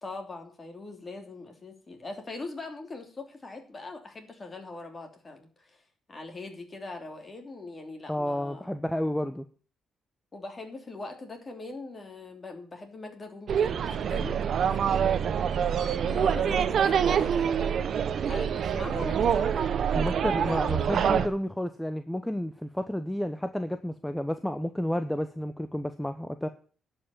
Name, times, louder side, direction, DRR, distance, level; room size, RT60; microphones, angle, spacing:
voice 1, 0.0-5.8 6.1-8.8 10.3-14.4 14.6-15.3 16.0-17.8 18.3-19.7, left 3 dB, 30° left, 3 dB, 3.2 m, -41 dB
voice 2, 8.1-9.5 19.9-26.5, equal, 5° left, 9 dB, 0.8 m, -31 dB
sound 1, 13.5-21.3, right 8 dB, 60° right, 0.9 m, -26 dB
11.0 x 5.7 x 8.8 m, 0.41 s
cardioid pair, 90°, 0 cm